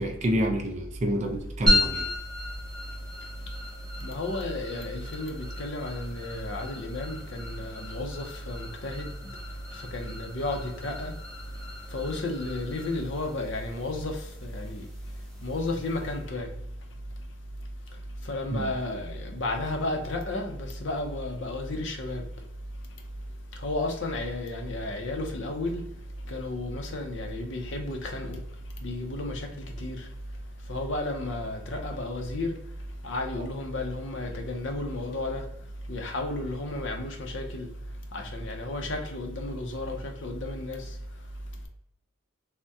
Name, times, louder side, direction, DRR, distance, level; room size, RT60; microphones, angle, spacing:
voice 1, 0.0-2.1 18.5-18.7, equal, 35° right, 3 dB, 0.4 m, -28 dB
sound 1, 1.7-16.3, left 1 dB, ahead, 0.7 m, -34 dB
voice 2, 4.0-9.1 9.9-11.1 11.9-14.2 14.4-14.8 15.4-16.5 18.3-22.2 23.6-25.8 26.3-28.4 28.8-29.5 29.8-30.0 30.7-32.5 33.0-35.4 35.9-37.7 38.1-40.8, left 2 dB, 60° left, 3 dB, 0.6 m, -32 dB
3.4 x 2.1 x 2.6 m, 0.80 s
head